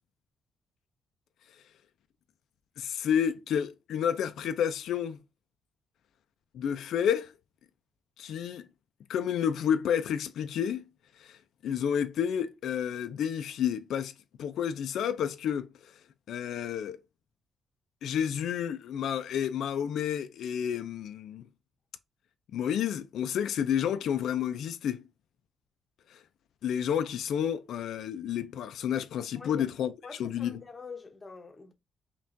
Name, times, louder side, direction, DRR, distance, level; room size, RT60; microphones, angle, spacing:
voice 1, 2.8-5.2 6.5-7.3 8.2-8.7 9.1-10.8 11.2-14.1 14.4-16.0 16.3-17.0 18.0-21.5 22.5-25.0 26.1-26.2 26.6-29.9 30.2-30.6, left 8 dB, 75° left, 0.4 m, -30 dB
voice 2, 29.4-29.7 30.0-31.7, left 4 dB, 20° left, 0.7 m, -45 dB
5.6 x 2.3 x 2.5 m
wide cardioid pair, 175°, 0 cm